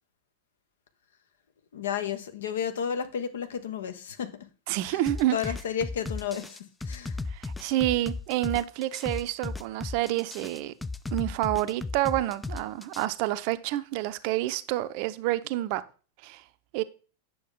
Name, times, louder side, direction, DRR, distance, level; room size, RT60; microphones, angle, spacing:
voice 1, 1.7-4.4 4.9-5.0 5.3-7.2, left 8 dB, 60° left, 1.0 m, -32 dB
voice 2, 4.7-5.5 7.3-10.7 11.1-15.8 16.2-16.4 16.7-16.8, right 15 dB, 45° right, 0.6 m, -28 dB
sound 1, 5.1-13.1, left 3 dB, 5° left, 0.4 m, -35 dB
9.4 x 6.9 x 3.7 m
figure-of-eight pair, 90°, 0 cm